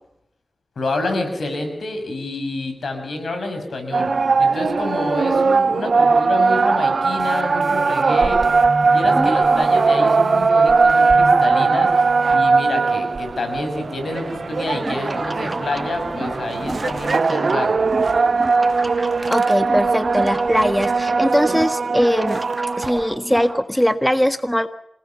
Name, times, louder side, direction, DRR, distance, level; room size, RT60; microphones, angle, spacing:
voice 1, 0.8-8.4 8.8-17.7, left 2 dB, 90° left, 6 dB, 6.3 m, -28 dB
sound 1, 3.9-23.1, right 4 dB, 75° right, 0.9 m, -19 dB
sound 2, 7.2-14.4 14.9-15.0, right 2 dB, 55° right, 3.3 m, -34 dB
voice 2, 9.1-9.6 19.3-22.4 22.8-24.7, equal, 5° left, 10 dB, 1.6 m, -20 dB
sound 3, 14.7-23.6, right 2 dB, 30° right, 2.8 m, -31 dB
27.0 x 19.0 x 7.1 m, 0.76 s
cardioid pair, 50°, 0 cm